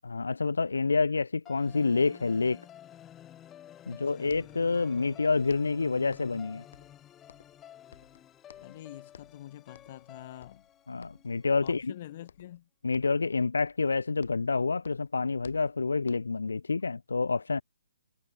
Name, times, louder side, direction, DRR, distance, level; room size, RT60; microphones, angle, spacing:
voice 1, 0.0-2.6 3.9-6.6 10.9-11.9 12.8-17.6, left 4 dB, 70° left, 1.3 m, -28 dB
sound 1, 1.4-11.7, left 11 dB, 15° left, 1.9 m, -52 dB
voice 2, 3.9-4.4 8.6-10.6 11.6-12.7, left 13 dB, 40° left, 2.5 m, -46 dB
sound 2, 4.0-4.1 4.2-5.2 5.5-6.4 6.7-7.7 7.9-8.8 9.1-9.4 9.7-10.1 10.4-11.3 11.6-12.0 12.3-12.6 12.9-14.6 14.8-16.5, left 7 dB, 55° left, 5.5 m, -56 dB
figure-of-eight pair, 135°, 0 cm